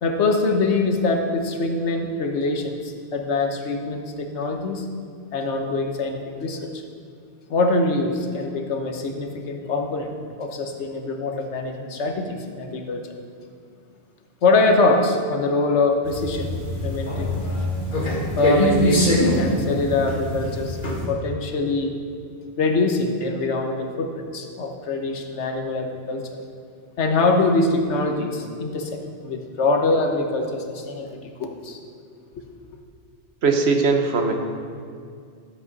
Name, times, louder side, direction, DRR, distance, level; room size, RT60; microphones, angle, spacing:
voice 1, 0.0-4.8 5.3-6.8 7.5-13.1 14.4-16.6 16.8-17.3 18.4-21.9 22.6-26.2 27.0-31.8, left 3 dB, 80° left, 4 dB, 1.3 m, -23 dB
sound 1, 16.0-21.1, left 1 dB, 45° left, 1.9 m, -23 dB
voice 2, 33.4-34.3, right 4 dB, 65° right, 4 dB, 1.2 m, -19 dB
13.5 x 8.0 x 4.0 m, 2.2 s
omnidirectional pair, 1.2 m